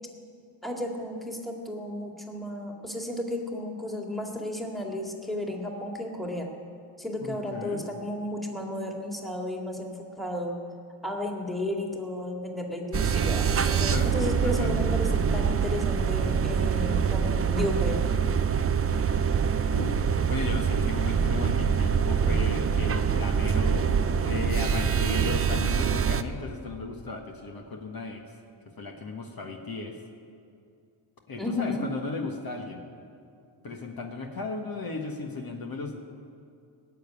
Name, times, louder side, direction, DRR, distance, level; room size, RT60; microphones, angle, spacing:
voice 1, 0.6-6.5 7.0-10.6 11.0-18.0 31.4-31.9, left 1 dB, ahead, 0 dB, 2.1 m, -33 dB
voice 2, 7.2-7.9 13.8-14.7 19.7-23.9 24.2-28.2 28.8-29.9 31.3-32.8 33.6-36.0, left 3 dB, 45° left, 2 dB, 1.5 m, -35 dB
sound 1, 12.9-26.2, right 7 dB, 30° right, 0.6 m, -25 dB
19.0 x 7.3 x 9.8 m, 2.4 s
cardioid pair, 115°, 49 cm